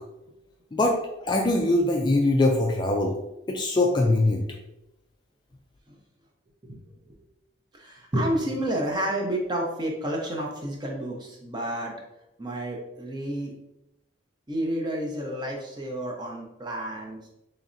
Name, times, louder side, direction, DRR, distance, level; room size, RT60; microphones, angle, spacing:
voice 1, 0.7-3.2 3.5-4.4, left 2 dB, 25° left, 1 dB, 0.3 m, -22 dB
voice 2, 7.7-12.0 12.4-13.5 14.5-17.2, right 1 dB, 20° right, -1 dB, 0.6 m, -30 dB
4.0 x 3.1 x 2.5 m, 0.85 s
head